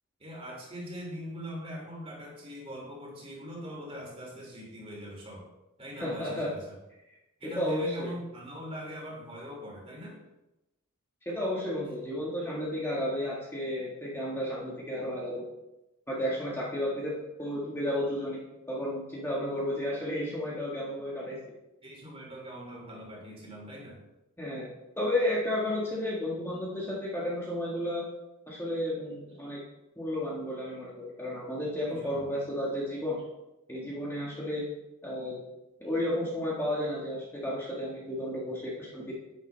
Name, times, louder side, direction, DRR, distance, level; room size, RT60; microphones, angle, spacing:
voice 1, 0.2-5.4 5.8-6.7 7.4-10.2 21.8-24.0 31.8-32.2, equal, 25° right, -2 dB, 2.9 m, -42 dB
voice 2, 6.0-6.5 7.6-8.1 11.3-15.5 16.1-17.1 17.4-21.4 24.4-28.1 28.5-29.6 30.0-33.2 33.7-34.7 35.0-35.4 35.8-39.1, left 1 dB, 10° left, -6 dB, 1.7 m, -32 dB
10.5 x 9.3 x 3.4 m, 0.96 s
head